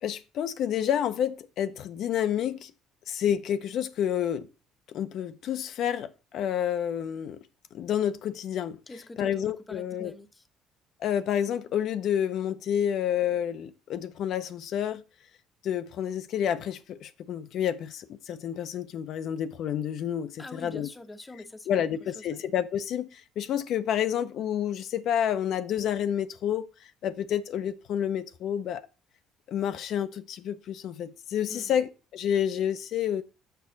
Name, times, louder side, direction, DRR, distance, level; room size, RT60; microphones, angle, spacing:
voice 1, 0.0-2.7 3.1-4.5 4.9-7.4 7.7-8.8 9.2-10.1 11.0-15.0 15.6-20.9 21.7-28.8 29.5-33.2, left 9 dB, 60° left, 0.6 m, -29 dB
voice 2, 8.9-10.4 20.4-21.9 22.1-22.4 31.5-31.8, left 2 dB, 15° left, 0.7 m, -45 dB
6.8 x 6.0 x 3.9 m
cardioid pair, 130°, 0 cm